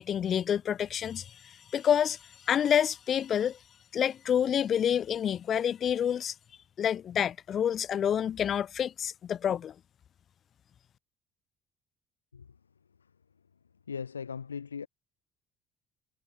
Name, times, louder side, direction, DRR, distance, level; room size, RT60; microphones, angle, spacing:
voice 1, 0.0-2.2 2.5-3.6 3.9-6.3 6.8-9.7, left 9 dB, 50° left, 2.5 m, -28 dB
voice 2, 13.9-14.9, left 6 dB, 90° left, 7.2 m, -38 dB
figure-of-eight pair, 55°, 0 cm